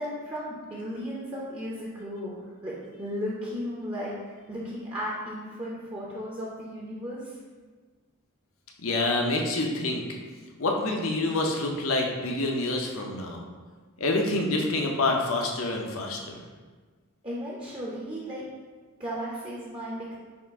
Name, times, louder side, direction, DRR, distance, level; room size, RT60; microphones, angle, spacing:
voice 1, 0.0-7.4 17.2-18.5 19.0-20.2, equal, 25° right, -5 dB, 0.6 m, -35 dB
voice 2, 8.8-10.0 10.6-13.4 14.0-16.4, left 2 dB, 75° left, 1 dB, 0.7 m, -27 dB
5.6 x 2.5 x 3.5 m, 1.4 s
head